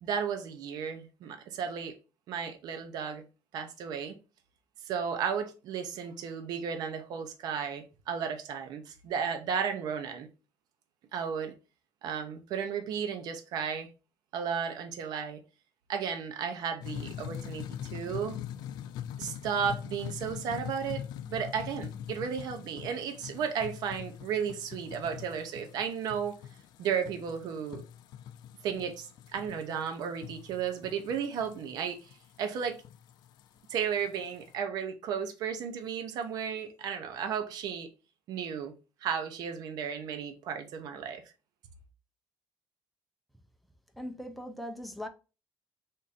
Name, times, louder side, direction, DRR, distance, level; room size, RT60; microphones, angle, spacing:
voice 1, 0.0-2.0 2.3-3.2 3.5-4.2 4.9-10.3 11.1-11.5 12.0-13.9 14.3-15.4 15.9-18.4 19.2-26.4 26.8-27.8 28.6-32.8 33.7-37.9 38.3-38.7 39.0-41.2, right 7 dB, 65° right, 0.6 m, -34 dB
sound 1, 16.8-34.5, left 10 dB, 70° left, 0.3 m, -43 dB
voice 2, 44.0-45.1, equal, ahead, 0.5 m, -39 dB
3.7 x 2.6 x 3.9 m
cardioid pair, 160°, 7 cm